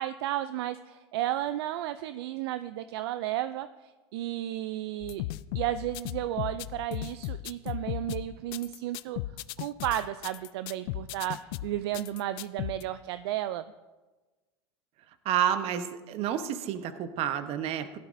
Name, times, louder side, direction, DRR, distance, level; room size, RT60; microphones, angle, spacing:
voice 1, 0.0-5.2 5.5-9.2 9.6-13.6, right 13 dB, 65° right, 12 dB, 0.4 m, -33 dB
sound 1, 5.0-12.8, left 16 dB, 60° left, 0.4 m, -36 dB
voice 2, 15.2-18.0, right 10 dB, 45° right, 10 dB, 1.0 m, -29 dB
16.0 x 12.0 x 2.6 m, 1.2 s
hypercardioid pair, 90°, 14 cm